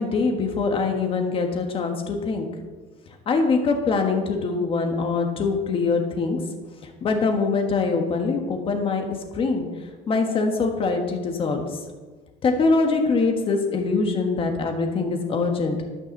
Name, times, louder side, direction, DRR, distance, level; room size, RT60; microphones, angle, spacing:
voice 1, 0.0-2.5 3.3-6.4 7.0-9.0 9.3-9.7 10.1-11.7 12.4-15.8, left 4 dB, 30° left, 3 dB, 1.4 m, -23 dB
12.5 x 6.1 x 6.5 m, 1.3 s
cardioid pair, 175°, 19 cm